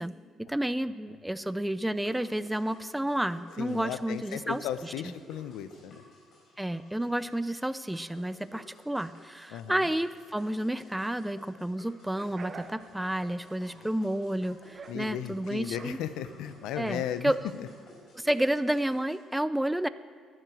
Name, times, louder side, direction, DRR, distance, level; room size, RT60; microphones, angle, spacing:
voice 1, 0.0-5.1 6.6-16.0 16.8-17.4 18.1-19.9, right 1 dB, 5° right, 14 dB, 0.4 m, -31 dB
sound 1, 2.0-19.2, left 1 dB, 60° left, 4.6 m, -55 dB
voice 2, 3.6-6.0 9.5-9.9 14.9-17.3 17.6-17.7, left 10 dB, 90° left, 12 dB, 0.7 m, -36 dB
sound 2, 12.2-17.2, right 4 dB, 30° right, 1.1 m, -49 dB
11.5 x 11.0 x 7.7 m, 2.1 s
cardioid pair, 130°, 0 cm